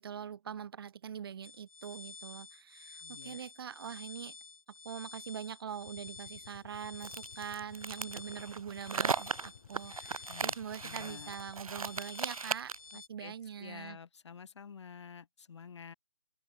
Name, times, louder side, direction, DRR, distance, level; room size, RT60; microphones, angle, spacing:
voice 1, 0.0-4.4 4.8-14.0, right 8 dB, 40° right, 1.3 m, -43 dB
sound 1, 1.4-13.1, left 4 dB, 75° left, 1.5 m, -51 dB
voice 2, 3.0-3.4 10.3-11.3 12.9-15.9, left 6 dB, 50° left, 1.0 m, -50 dB
sound 2, 5.8-12.3, left 9 dB, 20° left, 0.4 m, -57 dB
sound 3, 7.0-12.9, right 5 dB, 75° right, 0.7 m, -37 dB
open air
figure-of-eight pair, 150°, 18 cm